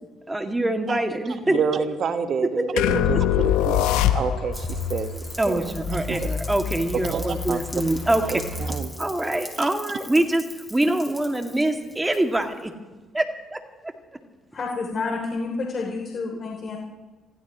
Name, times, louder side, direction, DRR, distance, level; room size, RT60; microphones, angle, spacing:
voice 1, 0.3-1.6 2.5-3.0 5.4-8.4 9.0-10.5 10.7-12.7 13.1-13.9, right 1 dB, 15° right, 5 dB, 2.3 m, -24 dB
voice 2, 1.5-3.2 3.6-5.1 5.5-5.7 5.9-6.2 7.1-7.6 8.2-8.4 8.7-8.9 9.6-9.7, right 6 dB, 55° right, 9 dB, 1.5 m, -28 dB
sound 1, 2.8-4.6, left 11 dB, 85° left, 0.9 m, -21 dB
sound 2, 3.6-8.8, left 3 dB, 65° left, 2.5 m, -33 dB
Rain, 4.5-12.6, left 1 dB, 5° left, 3.8 m, -41 dB
voice 3, 14.5-16.8, left 3 dB, 50° left, -1 dB, 3.2 m, -29 dB
27.0 x 16.0 x 3.1 m, 1.3 s
supercardioid pair, 65°, 0 cm